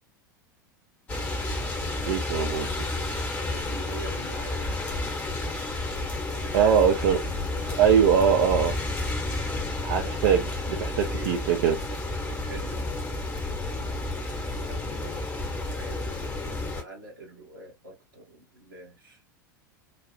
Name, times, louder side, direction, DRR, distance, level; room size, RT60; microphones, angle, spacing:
sound 1, 1.1-16.8, left 2 dB, 15° left, 1.0 m, -31 dB
voice 1, 2.0-2.7 6.5-7.2 7.8-8.7 9.8-11.8, right 8 dB, 50° right, 0.6 m, -22 dB
voice 2, 3.3-5.3 6.3-8.1 10.2-10.5 11.1-11.4 11.9-12.8 14.5-15.2 15.6-19.2, right 2 dB, 75° right, 1.4 m, -43 dB
4.1 x 2.3 x 2.5 m
figure-of-eight pair, 80°, 11 cm